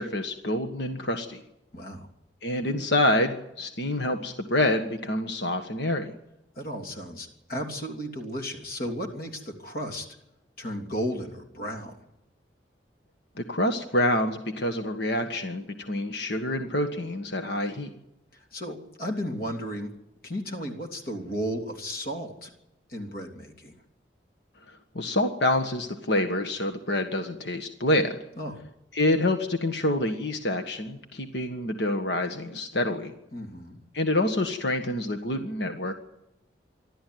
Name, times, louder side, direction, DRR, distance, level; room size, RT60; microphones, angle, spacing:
voice 1, 0.0-1.4 2.4-6.1 13.5-17.9 24.9-28.2 28.9-33.1 33.9-35.9, left 1 dB, 70° left, 6 dB, 1.6 m, -27 dB
voice 2, 1.7-2.1 6.5-10.1 10.6-12.0 18.3-19.9 20.2-22.5 22.9-23.7 28.4-28.6 33.3-33.8, equal, 50° left, 3 dB, 3.1 m, -34 dB
26.5 x 12.5 x 9.5 m, 0.87 s
head